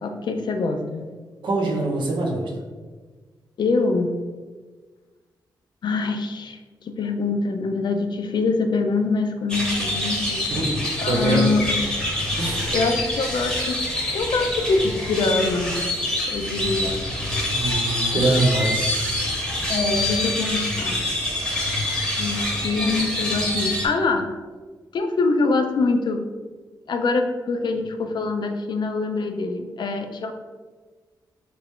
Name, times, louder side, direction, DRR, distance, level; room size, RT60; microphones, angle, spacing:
voice 1, 0.0-1.0 3.6-4.1 5.8-10.5 11.0-11.9 12.7-13.8 14.1-15.9 16.2-17.0 19.7-21.0 22.2-24.3 24.9-26.2 26.9-30.3, left 3 dB, 65° left, 6 dB, 0.4 m, -24 dB
voice 2, 1.4-2.5 10.5-10.7 11.0-11.4 12.4-12.8 17.5-19.2, right 2 dB, 80° right, -1 dB, 0.8 m, -23 dB
sound 1, 9.5-23.9, left 1 dB, 10° left, 0.8 m, -26 dB
3.2 x 2.4 x 3.5 m, 1.4 s
cardioid pair, 95°, 8 cm